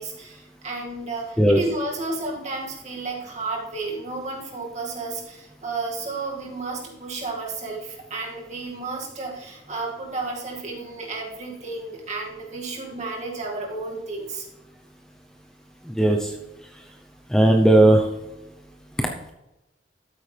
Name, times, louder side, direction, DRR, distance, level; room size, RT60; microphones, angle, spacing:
voice 1, 0.0-14.5, right 3 dB, 45° right, -1 dB, 2.2 m, -32 dB
voice 2, 15.9-16.3 17.3-18.1 19.0-19.1, right 1 dB, 5° left, 2 dB, 0.7 m, -16 dB
13.0 x 8.8 x 3.4 m, 0.96 s
head